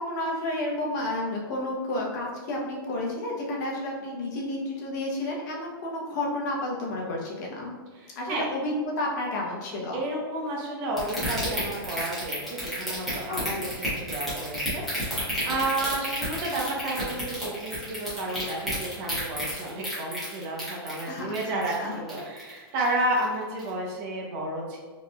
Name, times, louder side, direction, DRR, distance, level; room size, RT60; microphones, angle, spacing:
voice 1, 0.0-7.7 8.1-10.0 13.3-13.6 21.1-22.0, left 1 dB, 45° left, -2 dB, 1.0 m, -31 dB
voice 2, 7.9-8.4 9.9-24.8, right 1 dB, 35° right, -2 dB, 0.9 m, -31 dB
sound 1, 11.0-22.6 22.9-23.2 23.6-23.7, equal, ahead, 1.2 m, -31 dB
4.6 x 3.2 x 2.4 m, 1.4 s
supercardioid pair, 160°, 13 cm